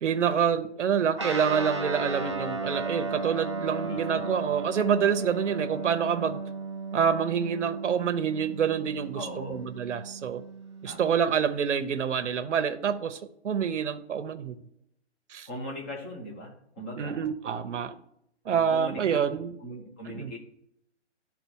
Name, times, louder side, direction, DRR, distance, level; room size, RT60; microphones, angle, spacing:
voice 1, 0.0-6.4 6.9-10.4 10.8-13.2 13.4-14.6 15.3-15.5 17.0-18.0 18.5-19.5 20.1-20.3, right 7 dB, 85° right, 9 dB, 0.8 m, -27 dB
Guitar, 1.2-11.1, right 3 dB, 25° right, 0.4 m, -35 dB
voice 2, 3.8-4.3 9.1-9.6 10.8-11.5 15.5-17.2 18.5-19.2 19.6-20.4, equal, 10° left, -1 dB, 0.7 m, -40 dB
11.5 x 3.9 x 4.6 m, 0.75 s
hypercardioid pair, 165°, 35 cm